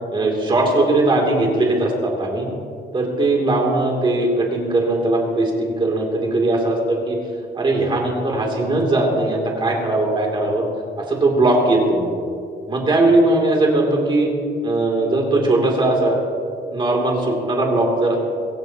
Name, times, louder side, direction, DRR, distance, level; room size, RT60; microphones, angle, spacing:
voice 1, 0.1-2.5 2.9-7.2 7.5-10.6 11.0-12.1 12.7-14.3 14.6-16.2 16.7-18.2, right 2 dB, 25° right, -1 dB, 2.9 m, -19 dB
24.5 x 15.0 x 2.9 m, 2.4 s
wide cardioid pair, 175°, 19 cm